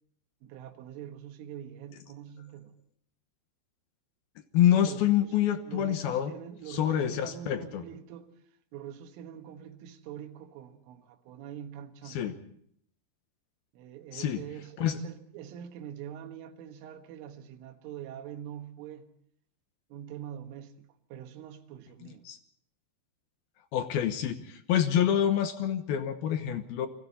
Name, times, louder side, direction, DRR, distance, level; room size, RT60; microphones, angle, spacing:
voice 1, 0.4-2.7 4.7-5.4 5.6-8.3 8.7-12.3 13.7-19.1 19.9-22.3, right 10 dB, 80° right, 4.0 m, -44 dB
voice 2, 4.5-6.3 6.7-7.8 12.1-12.4 14.1-14.4 14.8-15.0 22.3-22.4 23.7-26.9, left 10 dB, 70° left, 2.4 m, -27 dB
29.0 x 21.0 x 4.2 m
omnidirectional pair, 5.7 m